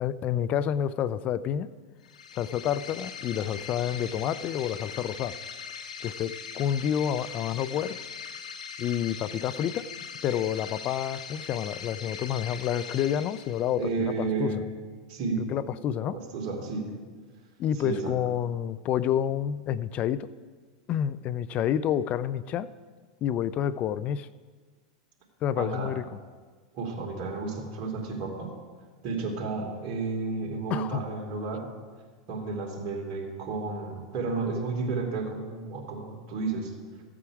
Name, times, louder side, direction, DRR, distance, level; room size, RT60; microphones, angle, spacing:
voice 1, 0.0-1.7 2.4-5.4 6.0-8.0 8.8-9.9 10.2-14.5 15.5-16.2 17.6-20.3 20.9-22.7 23.2-24.3 25.4-26.0 30.7-31.0, left 10 dB, 40° left, 15 dB, 0.5 m, -29 dB
sound 1, 2.0-14.0, left 6 dB, 85° left, 1.0 m, -41 dB
voice 2, 13.8-14.7 15.1-15.5 16.0-16.9 17.8-18.1 25.5-25.9 26.7-28.5 29.0-31.7 32.3-36.7, right 4 dB, 50° right, -1 dB, 2.7 m, -32 dB
13.5 x 8.7 x 4.8 m, 1.5 s
hypercardioid pair, 105°, 4 cm